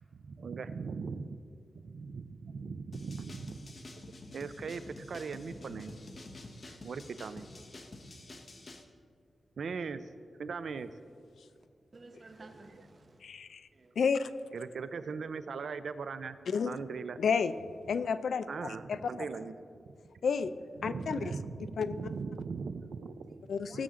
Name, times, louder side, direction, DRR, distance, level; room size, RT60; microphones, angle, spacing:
voice 1, 0.1-1.4 1.7-3.6 4.3-5.9 6.7-7.5 9.6-10.1 10.4-10.9 12.4-12.5 14.5-16.4 16.7-17.2 18.5-19.6 20.8-23.4 23.7-23.8, right 5 dB, 70° right, 12 dB, 0.5 m, -39 dB
sound 1, 2.9-8.8, left 2 dB, 45° left, 0.9 m, -48 dB
voice 2, 11.9-13.2 13.7-13.9 21.9-22.2 23.3-23.4 23.7-23.8, right 2 dB, 40° right, 4 dB, 1.0 m, -53 dB
voice 3, 13.2-13.6 14.0-14.3 16.5-16.7 17.2-17.5 17.9-19.0 20.2-20.5 20.8-21.2 21.8-21.9 23.5-23.8, left 6 dB, 85° left, 13 dB, 0.4 m, -30 dB
18.0 x 7.2 x 3.7 m, 2.3 s
wide cardioid pair, 140°, 0 cm